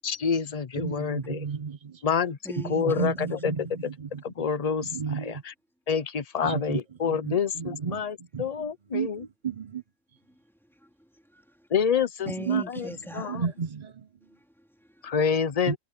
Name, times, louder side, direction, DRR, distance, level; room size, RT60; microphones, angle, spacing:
voice 1, 0.0-1.4 2.0-2.4 2.7-3.1 4.2-4.9 5.9-8.1 8.4-9.2 11.7-12.6 13.1-13.4 15.0-15.8, left 6 dB, 40° left, 0.8 m, -27 dB
voice 2, 0.7-2.0 2.6-4.5 4.8-5.4 6.4-9.8 12.2-14.3 15.7-15.8, right 6 dB, 45° right, 0.7 m, -33 dB
voice 3, 2.4-3.1 10.8-11.7 12.3-13.4 14.3-15.1, equal, ahead, 2.6 m, -41 dB
omnidirectional pair, 1.2 m